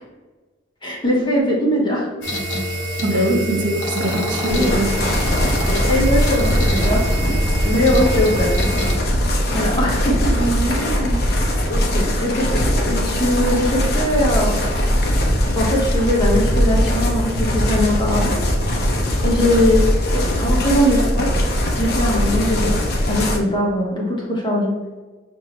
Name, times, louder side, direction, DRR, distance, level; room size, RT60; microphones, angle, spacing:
voice 1, 0.8-2.1 3.1-3.2 5.7-7.4 7.6-8.5 9.5-10.3 10.6-10.8 11.7-12.5 12.8-14.6 15.5-18.3 19.2-19.8 20.1-21.3 21.8-22.8 23.1-24.7, left 1 dB, 25° left, -3 dB, 1.0 m, -20 dB
sound 1, 2.2-9.0, equal, 80° left, 1.0 m, -26 dB
voice 2, 3.0-5.1 10.4-11.2, right 1 dB, 65° right, 2 dB, 0.7 m, -22 dB
sound 2, 4.0-8.4, equal, 10° right, 0.4 m, -32 dB
sound 3, 4.5-23.4, equal, 55° left, 0.7 m, -20 dB
5.6 x 2.7 x 3.0 m, 1.3 s
head